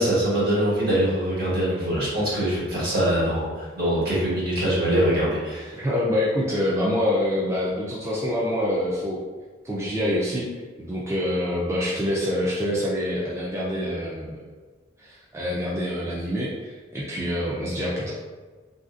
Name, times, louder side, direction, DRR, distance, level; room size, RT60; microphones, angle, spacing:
voice 1, 0.0-5.8, right 1 dB, 60° right, -8 dB, 1.3 m, -23 dB
voice 2, 5.7-9.2 9.6-10.5 10.8-14.4 15.0-18.1, left 1 dB, 15° right, -7 dB, 0.4 m, -26 dB
3.1 x 2.5 x 2.4 m, 1.4 s
head